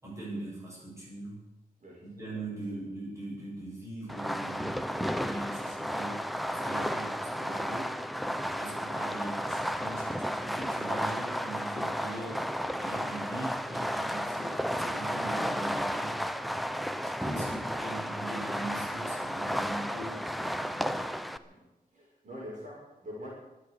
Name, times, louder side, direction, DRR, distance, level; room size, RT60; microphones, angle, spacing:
voice 1, 0.0-1.4 2.0-6.2 6.5-7.9 8.4-12.4 12.8-16.2 17.0-21.1, right 2 dB, 20° right, -6 dB, 7.8 m, -41 dB
voice 2, 1.8-2.2 2.7-2.8 21.4-23.3, equal, 50° right, -5 dB, 6.6 m, -47 dB
Fireworks, 4.1-21.4, equal, ahead, 0.6 m, -33 dB
25.0 x 8.4 x 6.9 m, 1.0 s
wide cardioid pair, 155°, 15 cm